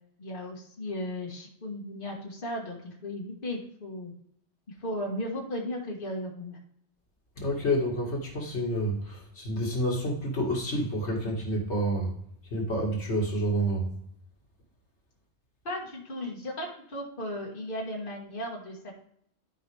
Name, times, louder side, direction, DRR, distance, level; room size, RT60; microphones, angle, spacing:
voice 1, 0.2-4.1 4.8-6.6 15.7-18.9, left 1 dB, 50° left, -1 dB, 1.9 m, -36 dB
voice 2, 7.4-12.2 12.5-13.9, equal, 80° left, -1 dB, 2.1 m, -29 dB
12.0 x 4.9 x 3.4 m, 0.68 s
omnidirectional pair, 1.1 m